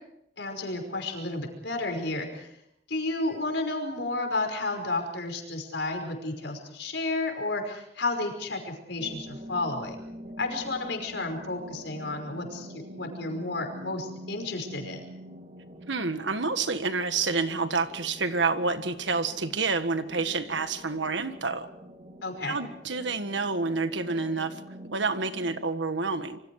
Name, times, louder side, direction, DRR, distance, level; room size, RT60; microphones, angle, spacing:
voice 1, 0.4-2.5 2.9-10.0 10.4-15.1 22.2-22.6, left 2 dB, 70° left, 4 dB, 5.5 m, -32 dB
sound 1, 9.0-25.6, equal, 35° right, 2.5 m, -45 dB
voice 2, 15.9-21.7 22.4-24.6 24.9-26.4, right 4 dB, 75° right, 9 dB, 1.6 m, -28 dB
27.0 x 25.0 x 4.9 m, 0.81 s
head